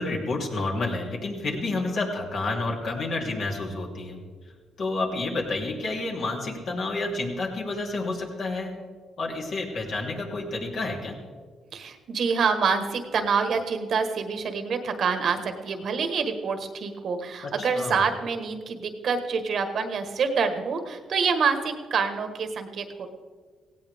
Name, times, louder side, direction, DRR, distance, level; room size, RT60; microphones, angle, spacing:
voice 1, 0.0-4.2 4.8-8.7 9.2-11.1 17.4-18.0, left 2 dB, 60° left, -1 dB, 3.2 m, -30 dB
voice 2, 11.7-23.1, right 5 dB, 60° right, 7 dB, 1.4 m, -26 dB
17.0 x 16.5 x 3.6 m, 1.6 s
cardioid pair, 90°, 0 cm